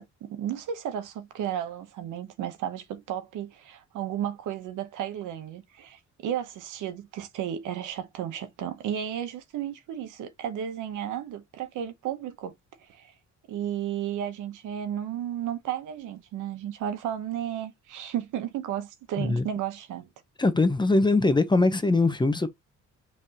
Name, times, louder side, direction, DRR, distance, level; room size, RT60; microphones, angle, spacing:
voice 1, 0.0-12.5 12.8-13.1 13.5-20.1, right 10 dB, 85° right, 0.9 m, -33 dB
voice 2, 20.4-22.5, left 2 dB, 15° left, 0.8 m, -22 dB
5.3 x 3.4 x 2.8 m
cardioid pair, 90°, 30 cm